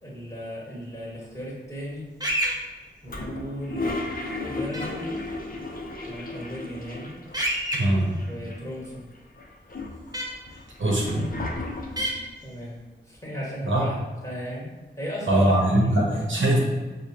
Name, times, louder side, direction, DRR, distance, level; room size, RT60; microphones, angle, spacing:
voice 1, 0.0-2.1 3.0-4.0 4.4-5.0 6.0-7.2 8.3-9.1 12.4-12.8 13.0-15.6 15.8-16.2, equal, 15° left, -5 dB, 1.5 m, -36 dB
sound 1, 2.2-2.5 4.7-4.8 7.3-7.8 10.1-10.2 12.0-12.1, equal, 20° right, 0.8 m, -26 dB
Toilet flush, 3.1-7.4 7.7-7.8 8.0-8.9 9.4-12.2, left 2 dB, 45° left, 0.6 m, -34 dB
voice 2, 7.7-8.1 10.8-11.2 13.6-13.9 15.3-16.6, right 1 dB, 70° right, -3 dB, 0.8 m, -21 dB
4.8 x 2.1 x 2.8 m, 1.2 s
cardioid pair, 45°, 20 cm